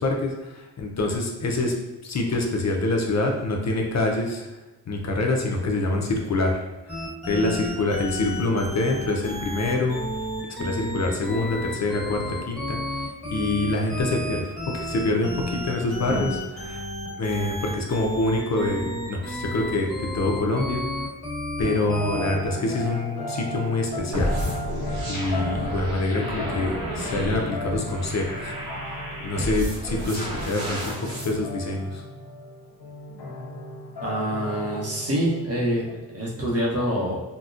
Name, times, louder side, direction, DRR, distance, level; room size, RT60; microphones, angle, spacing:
voice 1, 0.0-1.7 2.0-4.5 4.9-10.0 10.5-16.4 16.6-16.8 17.2-20.8 21.6-24.4 25.1-28.5 29.2-32.0, left 2 dB, 45° left, 1 dB, 0.5 m, -26 dB
sound 1, 6.9-22.4, equal, ahead, 1.4 m, -32 dB
sound 2, 21.6-29.4 29.8-30.0 30.3-30.4 31.0-35.9, left 1 dB, 80° left, 0.7 m, -36 dB
sound 3, 24.1-31.3, equal, 70° right, 1.1 m, -31 dB
voice 2, 34.0-37.2, equal, 40° right, -4 dB, 0.8 m, -26 dB
3.8 x 2.1 x 2.4 m, 1.1 s
wide cardioid pair, 120°, 38 cm